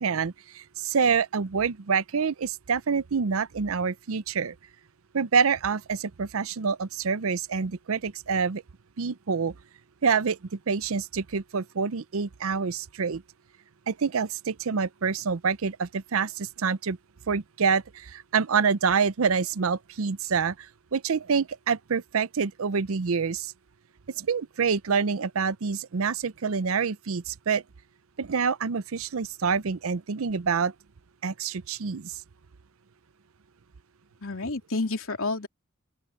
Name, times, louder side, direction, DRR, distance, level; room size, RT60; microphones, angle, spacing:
voice 1, 0.0-4.5 5.1-8.6 9.0-9.5 10.0-13.2 13.9-17.0 17.3-23.5 24.1-27.6 28.2-30.7 31.2-32.2, right 5 dB, 70° right, 0.6 m, -27 dB
voice 2, 34.2-35.5, left 3 dB, 65° left, 3.3 m, -29 dB
open air
head